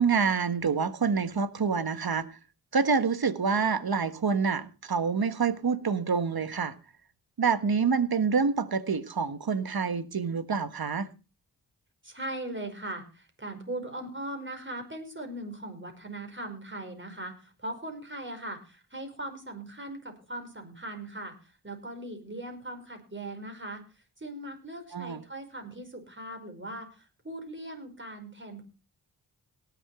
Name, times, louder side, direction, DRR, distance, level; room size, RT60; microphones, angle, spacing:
voice 1, 0.0-2.3 2.7-6.7 7.4-11.1 24.9-25.2, right 5 dB, 60° right, 1.5 m, -27 dB
voice 2, 12.0-23.8 24.2-28.6, right 1 dB, 30° right, 5.4 m, -39 dB
18.0 x 7.4 x 4.9 m
cardioid pair, 45°, 41 cm